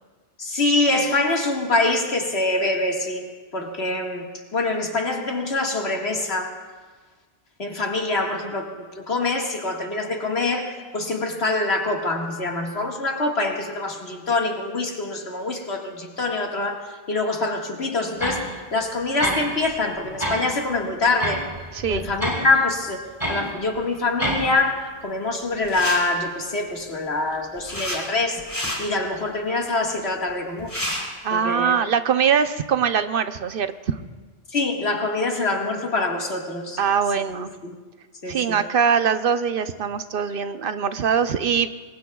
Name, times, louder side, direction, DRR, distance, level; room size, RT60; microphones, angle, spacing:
voice 1, 0.4-3.2 3.5-4.2 4.5-6.5 7.6-21.4 21.9-23.0 23.3-28.4 28.8-30.7 31.3-31.8 34.5-36.8 37.6-37.7 38.2-38.6, left 2 dB, 85° left, 1 dB, 2.1 m, -25 dB
sound 1, 18.2-18.4 19.2-19.7 20.0-20.4 21.2-22.4 23.2-23.4 24.2-24.5, equal, 35° right, 6.1 m, -26 dB
voice 2, 21.7-22.1 31.2-34.0 36.8-37.5 38.3-41.7, right 7 dB, 60° right, 10 dB, 0.9 m, -22 dB
sound 2, 25.6-26.0 27.2-28.0 28.4-28.8 30.3-30.4 30.6-31.0, equal, 20° left, 4.5 m, -29 dB
26.5 x 21.5 x 2.3 m, 1.4 s
omnidirectional pair, 1.1 m